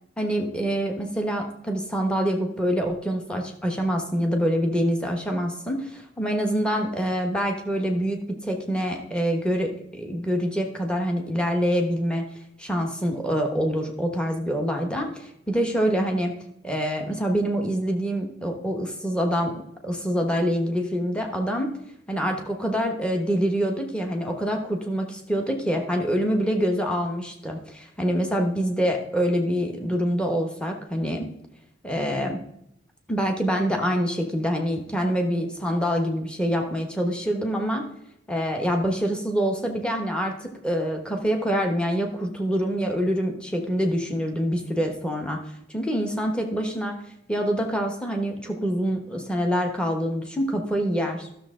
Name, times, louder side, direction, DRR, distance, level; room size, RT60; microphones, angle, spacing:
voice 1, 0.2-8.2 8.4-12.2 12.6-16.3 16.6-19.5 19.8-21.7 22.1-31.3 31.8-32.4 33.1-37.8 38.3-45.4 45.7-46.9 47.3-51.3, equal, 5° left, 2 dB, 1.1 m, -25 dB
13.0 x 6.6 x 3.7 m, 0.77 s
head